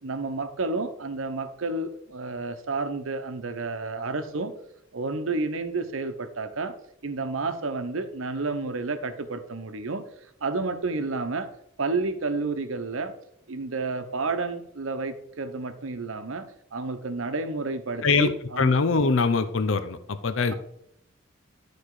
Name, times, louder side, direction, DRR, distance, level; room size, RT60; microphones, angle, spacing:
voice 1, 0.0-4.5 4.9-6.7 7.0-10.0 10.4-11.5 11.8-13.1 13.5-16.4 16.7-18.7, right 3 dB, 80° right, 9 dB, 0.9 m, -30 dB
voice 2, 18.0-20.5, left 4 dB, 70° left, 11 dB, 0.6 m, -23 dB
12.0 x 4.3 x 4.8 m, 0.75 s
head